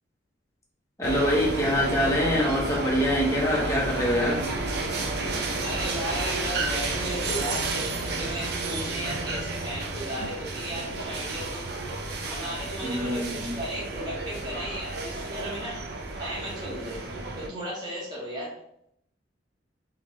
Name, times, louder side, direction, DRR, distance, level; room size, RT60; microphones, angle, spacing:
voice 1, 1.0-4.4 12.8-13.5, equal, 15° left, -4 dB, 1.2 m, -25 dB
sound 1, 1.0-17.5, right 2 dB, 60° right, 0.7 m, -31 dB
voice 2, 5.6-11.7 12.2-15.8 16.2-17.0 17.3-18.5, equal, 25° right, -7 dB, 1.4 m, -35 dB
3.6 x 3.4 x 3.2 m, 0.74 s
head